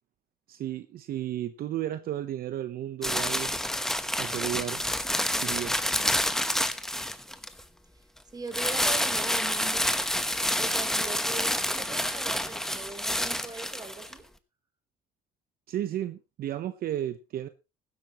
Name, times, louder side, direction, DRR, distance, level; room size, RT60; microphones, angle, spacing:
voice 1, 0.5-3.5 4.1-4.8 5.4-5.8 15.7-17.5, right 12 dB, 60° right, 0.8 m, -33 dB
sound 1, 3.0-7.6 8.5-14.1, left 1 dB, 5° left, 1.0 m, -28 dB
voice 2, 8.3-9.9 10.6-14.2, right 4 dB, 25° right, 3.2 m, -40 dB
15.5 x 12.5 x 3.0 m
cardioid pair, 110°, 17 cm